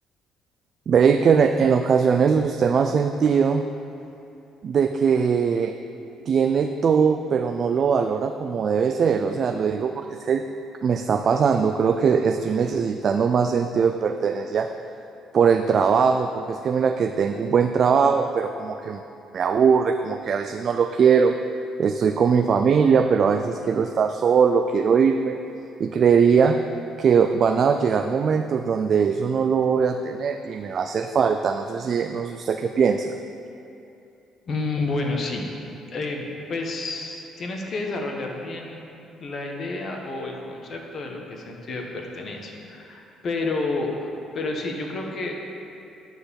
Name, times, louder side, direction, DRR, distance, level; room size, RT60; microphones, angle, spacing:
voice 1, 0.9-3.6 4.6-5.7 6.3-10.4 10.8-14.7 15.3-19.0 19.3-21.4 21.8-25.4 25.8-26.6 27.0-33.1, right 6 dB, 45° right, 6 dB, 0.3 m, -21 dB
voice 2, 34.5-35.5 35.9-38.8 39.2-45.4, left 3 dB, 45° left, 1 dB, 1.3 m, -30 dB
9.7 x 4.5 x 6.9 m, 2.7 s
cardioid pair, 110°, 0 cm